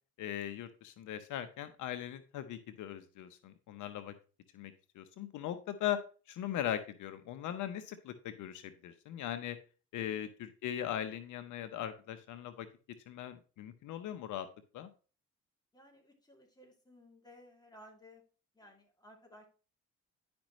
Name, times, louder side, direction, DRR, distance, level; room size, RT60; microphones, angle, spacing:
voice 1, 0.2-4.1 4.5-6.0 6.3-9.6 9.9-12.7 13.1-14.5 14.7-14.9, left 11 dB, 80° left, 10 dB, 0.8 m, -39 dB
voice 2, 15.7-18.2 18.5-19.5, left 1 dB, 15° left, 1 dB, 2.6 m, -58 dB
10.5 x 5.2 x 3.1 m, 0.36 s
cardioid pair, 90°, 30 cm